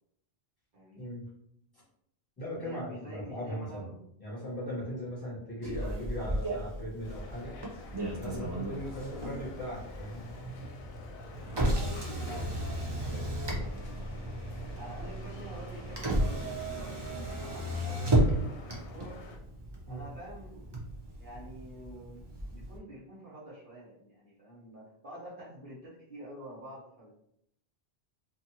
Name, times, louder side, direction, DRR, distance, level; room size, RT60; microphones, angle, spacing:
voice 1, 0.7-1.1 2.5-4.0 11.5-14.0 14.7-19.2 19.9-20.7 21.2-27.1, right 1 dB, 55° right, -6 dB, 1.1 m, -48 dB
voice 2, 2.4-3.9 4.2-7.5 8.2-10.3 19.9-20.1, equal, 20° left, -9 dB, 1.1 m, -39 dB
Motor vehicle (road), 5.6-22.8, right 1 dB, 35° right, 0.5 m, -34 dB
sound 1, 7.0-19.4, left 3 dB, 70° left, 0.8 m, -50 dB
2.6 x 2.5 x 2.8 m, 0.72 s
omnidirectional pair, 1.1 m